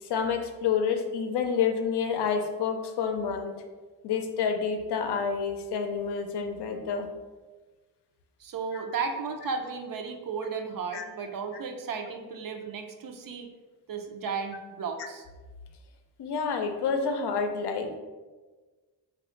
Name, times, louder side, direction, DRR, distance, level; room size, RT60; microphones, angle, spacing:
voice 1, 0.0-3.5 4.0-7.1 8.7-8.8 10.9-11.0 16.2-18.0, left 6 dB, 70° left, 6 dB, 0.5 m, -29 dB
voice 2, 8.4-13.5 13.9-15.2, right 5 dB, 55° right, 5 dB, 0.5 m, -34 dB
3.3 x 2.3 x 3.7 m, 1.3 s
cardioid pair, 90°, 42 cm